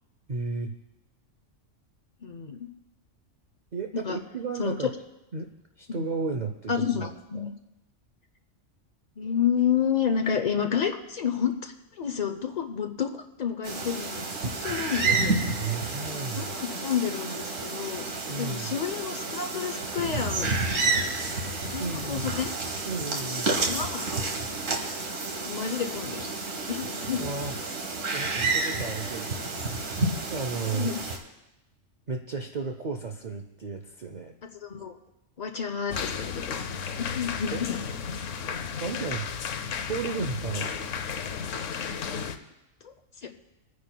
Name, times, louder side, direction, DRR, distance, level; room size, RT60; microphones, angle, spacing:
voice 1, 0.3-0.7 3.7-4.9 5.3-5.5 5.8-7.5 15.6-16.6 18.3-18.8 21.8-22.3 22.8-23.6 27.2-27.5 28.1-29.4 30.3-30.9 32.1-34.3 36.7-36.8 37.5-37.6 38.8-39.3 39.9-40.8, right 4 dB, 45° right, 4 dB, 0.6 m, -33 dB
voice 2, 2.2-2.7 3.9-4.2 4.6-4.7 5.9-6.1 6.7-7.5 9.2-13.1 13.4-15.4 16.2-18.0 18.4-20.6 20.9-21.0 21.7-22.5 23.7-24.0 25.5-26.2 26.7-27.2 30.6-31.0 34.6-35.0 35.4-36.6 37.0-37.8 43.2-43.3, left 7 dB, 45° left, 5 dB, 0.6 m, -30 dB
sound 1, 13.6-31.2, right 3 dB, 80° right, 1.7 m, -30 dB
sound 2, 35.9-42.4, left 6 dB, 75° left, 1.0 m, -33 dB
25.5 x 9.4 x 2.2 m, 0.96 s
omnidirectional pair, 1.3 m